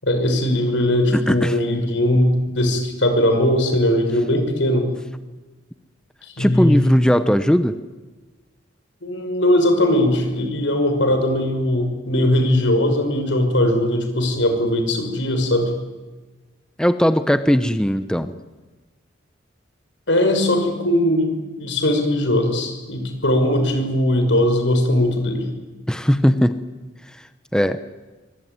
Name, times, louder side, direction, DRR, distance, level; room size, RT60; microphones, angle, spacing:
voice 1, 0.0-4.9 6.3-6.9 9.0-15.7 20.1-25.5, left 1 dB, 80° left, 7 dB, 5.9 m, -19 dB
voice 2, 1.1-1.6 6.4-7.7 16.8-18.3 25.9-26.6 27.5-27.8, equal, 5° left, 11 dB, 0.9 m, -18 dB
24.5 x 24.0 x 9.6 m, 1.2 s
head